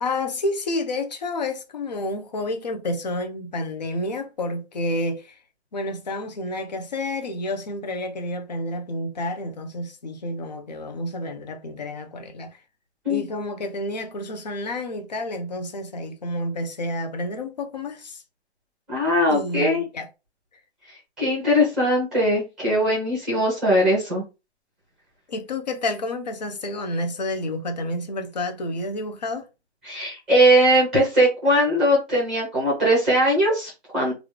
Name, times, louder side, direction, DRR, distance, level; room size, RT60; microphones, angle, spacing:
voice 1, 0.0-5.3 5.7-12.5 13.1-18.2 19.3-20.1 25.3-29.5, left 1 dB, 40° left, 0.6 m, -29 dB
voice 2, 18.9-19.8 21.2-24.2 29.8-34.1, equal, ahead, 0.8 m, -20 dB
3.1 x 2.4 x 3.2 m
hypercardioid pair, 170°, 33 cm